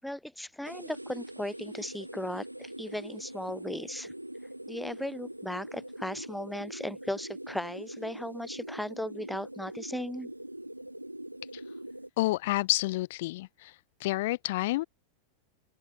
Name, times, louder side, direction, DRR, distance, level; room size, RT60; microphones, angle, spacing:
voice 1, 0.0-4.1 4.7-10.3, left 1 dB, ahead, 7.0 m, -37 dB
sound 1, 0.6-12.1, right 1 dB, 85° right, 2.9 m, -43 dB
voice 2, 12.2-13.7 14.0-14.8, left 18 dB, 50° left, 2.5 m, -29 dB
open air
figure-of-eight pair, 90°, 0 cm